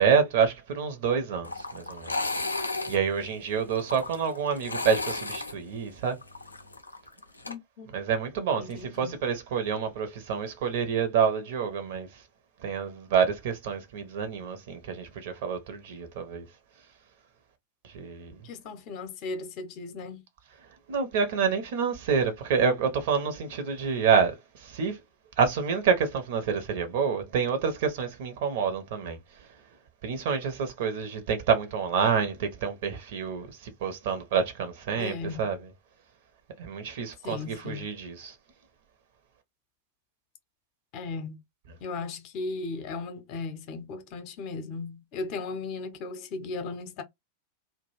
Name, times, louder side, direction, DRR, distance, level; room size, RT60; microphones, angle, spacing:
voice 1, 0.0-2.1 2.9-6.2 7.9-12.1 12.6-16.5 17.9-18.4 20.9-25.0 25.4-29.2 30.0-35.6 36.6-38.3, right 6 dB, 55° right, 0.7 m, -28 dB
sound 1, 1.4-7.5, left 3 dB, 80° left, 0.4 m, -34 dB
voice 2, 7.5-7.9 8.6-9.2 18.4-20.2 35.0-35.5 37.2-37.9 40.9-41.4 41.8-47.0, left 3 dB, 40° left, 0.7 m, -36 dB
2.3 x 2.2 x 3.0 m
figure-of-eight pair, 90°, 0 cm